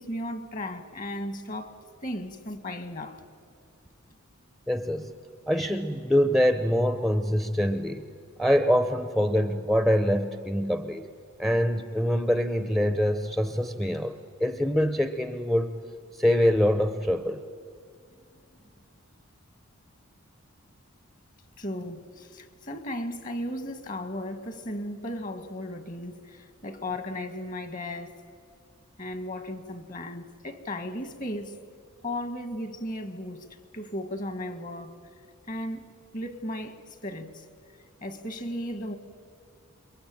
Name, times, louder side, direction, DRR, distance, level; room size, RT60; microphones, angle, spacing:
voice 1, 0.0-3.2 18.3-18.4 21.6-28.2 29.0-31.6 32.0-33.5 33.7-35.0 35.5-37.4 38.0-39.0, left 1 dB, 35° left, 1.8 m, -36 dB
voice 2, 4.7-5.1 5.5-8.1 8.4-11.1 11.4-15.8 16.1-17.4, equal, ahead, 0.8 m, -24 dB
28.5 x 23.0 x 8.9 m
head